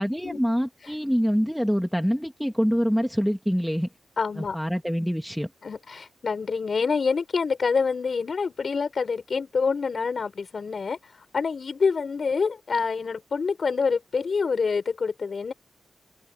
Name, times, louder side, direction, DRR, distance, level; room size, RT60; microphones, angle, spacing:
voice 1, 0.0-3.9 4.4-5.5, equal, ahead, 1.8 m, -25 dB
voice 2, 4.2-4.5 5.6-11.0 11.3-15.5, left 5 dB, 55° left, 6.6 m, -26 dB
open air
wide cardioid pair, 130°, 0 cm